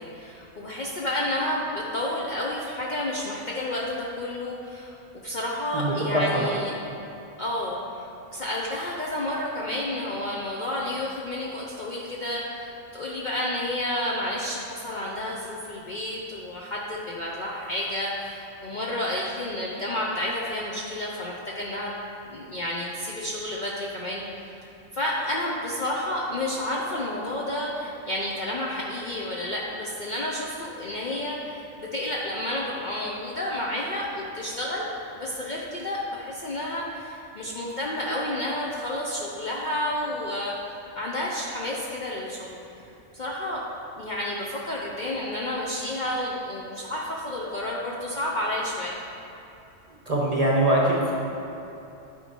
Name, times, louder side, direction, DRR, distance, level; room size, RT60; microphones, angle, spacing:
voice 1, 0.0-5.0 5.2-6.8 7.4-8.0 8.3-21.9 22.2-24.2 24.6-34.9 35.2-40.5 40.9-42.6 43.1-43.6 44.0-49.0, left 1 dB, 50° left, -4 dB, 0.6 m, -30 dB
voice 2, 5.7-6.4 50.1-51.1, right 1 dB, 35° right, -3 dB, 0.7 m, -23 dB
10.5 x 4.3 x 2.9 m, 2.9 s
omnidirectional pair, 1.3 m